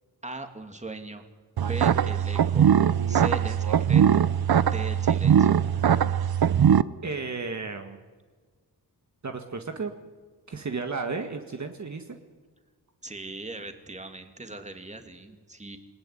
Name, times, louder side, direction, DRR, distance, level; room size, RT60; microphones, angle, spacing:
voice 1, 0.2-1.2 1.7-2.7 3.1-5.5 13.0-15.8, right 2 dB, 15° right, 6 dB, 2.6 m, -39 dB
sound 1, 1.6-6.8, right 8 dB, 65° right, 0.8 m, -21 dB
voice 2, 7.0-8.0 9.2-9.9 10.5-12.2, right 4 dB, 45° right, 5 dB, 1.9 m, -33 dB
28.5 x 20.0 x 9.9 m, 1.5 s
wide cardioid pair, 135°, 39 cm